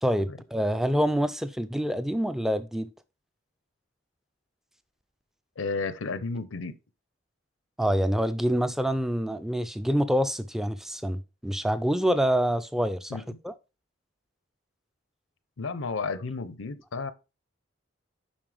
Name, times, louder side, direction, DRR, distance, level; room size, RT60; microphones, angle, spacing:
voice 1, 0.0-2.9 7.8-13.5, equal, ahead, 0.3 m, -26 dB
voice 2, 5.6-6.7 13.1-13.4 15.6-17.1, left 4 dB, 85° left, 0.6 m, -32 dB
7.2 x 5.4 x 3.3 m
head